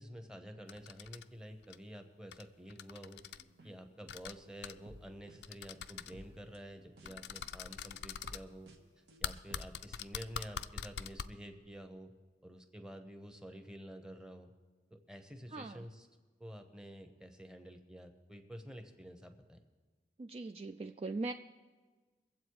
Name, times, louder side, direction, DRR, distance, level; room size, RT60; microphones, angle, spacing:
voice 1, 0.0-3.2 3.6-8.7 9.2-12.1 12.4-14.5 14.9-16.1 16.4-19.6, equal, 5° right, 6 dB, 0.9 m, -50 dB
sound 1, 0.7-1.2 1.6-1.8 2.3-2.4 2.7-3.4 4.1-4.3 4.6-4.7 5.4-6.1 7.1-8.4 9.2-11.2, left 8 dB, 70° left, 0.4 m, -43 dB
sound 2, 3.2-9.7, right 1 dB, 70° right, 1.2 m, -58 dB
voice 2, 15.5-15.9 20.2-21.3, right 3 dB, 35° right, 7 dB, 0.3 m, -40 dB
23.0 x 7.8 x 4.7 m, 1.4 s
head